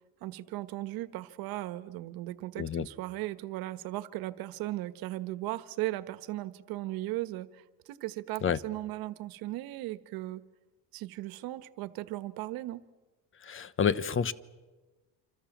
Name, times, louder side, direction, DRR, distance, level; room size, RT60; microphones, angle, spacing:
voice 1, 0.2-10.4 10.9-12.8, right 17 dB, 80° right, 13 dB, 1.4 m, -37 dB
voice 2, 2.6-2.9 8.4-8.6 13.4-14.3, left 7 dB, 35° left, 17 dB, 1.0 m, -28 dB
27.0 x 27.0 x 7.4 m, 1.2 s
cardioid pair, 120°, 35 cm